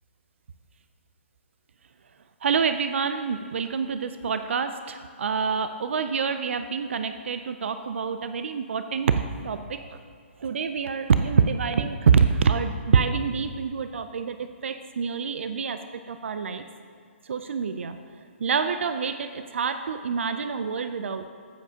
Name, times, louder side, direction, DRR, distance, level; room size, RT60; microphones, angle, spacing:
voice 1, 2.4-10.0 10.4-16.6 17.2-18.0 18.4-21.3, right 6 dB, 70° right, 9 dB, 0.4 m, -26 dB
14.0 x 7.4 x 2.8 m, 2.1 s
hypercardioid pair, 165°, 7 cm